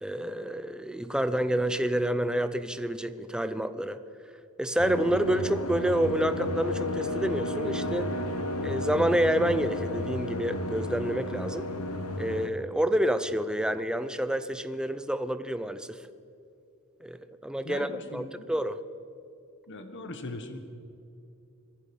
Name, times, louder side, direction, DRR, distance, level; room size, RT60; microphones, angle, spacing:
voice 1, 0.0-4.0 4.6-8.1 8.6-11.7 12.2-16.0 17.0-18.8, right 1 dB, 5° right, 12 dB, 0.6 m, -28 dB
sound 1, 4.8-12.5, left 1 dB, 85° left, 1.3 m, -32 dB
voice 2, 17.6-18.5 19.7-20.6, left 2 dB, 55° left, 7 dB, 1.4 m, -40 dB
25.0 x 11.0 x 5.4 m, 2.7 s
head